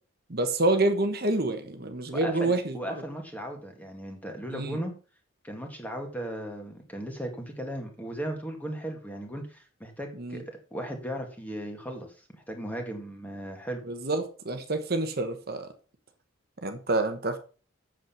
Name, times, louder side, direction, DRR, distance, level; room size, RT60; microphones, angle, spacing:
voice 1, 0.3-2.8 4.5-4.8 10.2-10.4 13.9-15.7 16.6-17.4, right 2 dB, 45° right, 1.2 m, -27 dB
voice 2, 2.1-4.9 5.4-10.4 10.7-12.2 12.5-13.8, right 1 dB, 5° left, 2.0 m, -36 dB
8.2 x 7.6 x 5.8 m
head